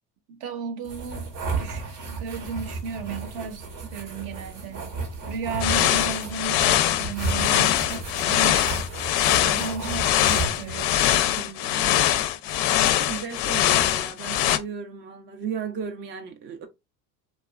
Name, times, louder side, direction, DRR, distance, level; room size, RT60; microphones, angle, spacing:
voice 1, 0.3-1.3 1.6-3.7 3.9-4.9 5.3-8.7 9.3-11.6, right 6 dB, 50° right, 0.7 m, -35 dB
sound 1, 0.8-11.0, right 4 dB, 85° right, 1.0 m, -34 dB
sound 2, 5.6-14.6, left 12 dB, 50° left, 0.4 m, -22 dB
voice 2, 11.4-12.0 13.0-16.7, right 7 dB, 25° right, 0.3 m, -36 dB
3.0 x 2.3 x 2.2 m
hypercardioid pair, 80°, 50 cm